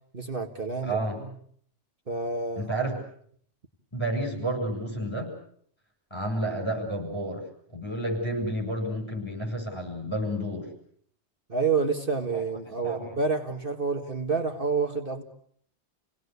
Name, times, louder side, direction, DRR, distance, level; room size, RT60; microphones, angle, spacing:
voice 1, 0.1-1.3 2.1-2.7 11.5-15.2, right 4 dB, 50° right, 4 dB, 2.1 m, -28 dB
voice 2, 0.8-1.2 2.6-3.0 3.9-5.3 6.1-7.4 7.7-10.7 12.3-12.4 12.8-13.2, right 1 dB, 25° left, 1 dB, 7.5 m, -30 dB
29.0 x 18.5 x 8.3 m, 0.64 s
omnidirectional pair, 1.2 m